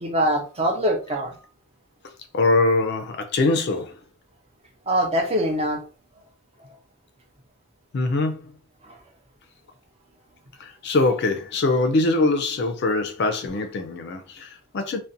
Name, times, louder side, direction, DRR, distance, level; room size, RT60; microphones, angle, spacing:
voice 1, 0.0-1.4 4.9-5.8 8.8-9.0, equal, 25° right, 0.4 m, -23 dB
voice 2, 2.3-4.0 7.9-8.5 10.6-15.0, left 2 dB, 50° left, 0.4 m, -23 dB
2.5 x 2.1 x 2.6 m
head